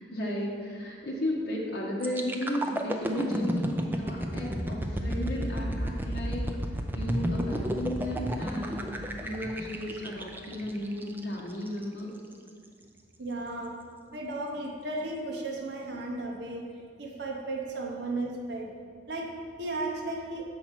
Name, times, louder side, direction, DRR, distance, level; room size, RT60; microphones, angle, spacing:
voice 1, 0.0-6.5 6.9-12.1, equal, 50° left, -4 dB, 1.0 m, -34 dB
sound 1, 2.0-11.8 12.3-12.5, equal, 10° right, 0.3 m, -32 dB
voice 2, 13.2-13.8 14.1-16.6 17.0-18.7 19.1-20.4, right 2 dB, 55° right, -1 dB, 0.9 m, -35 dB
7.1 x 4.2 x 5.8 m, 2.1 s
head